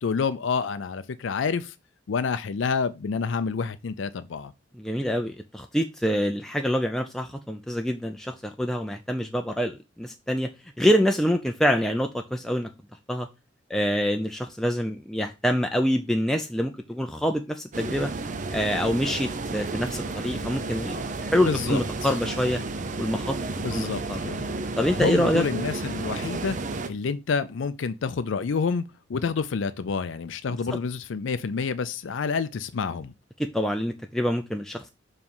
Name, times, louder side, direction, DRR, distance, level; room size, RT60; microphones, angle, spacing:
voice 1, 0.0-1.7 2.1-4.5 21.3-22.1 23.6-24.6 24.9-26.6 26.9-28.8 29.1-33.1, left 5 dB, 75° left, 0.4 m, -28 dB
voice 2, 4.8-10.5 10.8-12.7 13.1-13.3 13.7-18.1 18.5-22.6 23.0-23.4 23.7-24.3 24.8-25.4 30.5-30.6 33.4-34.9, equal, ahead, 0.5 m, -26 dB
sound 1, 17.7-26.9, right 3 dB, 40° right, 0.6 m, -32 dB
7.1 x 3.2 x 5.4 m
head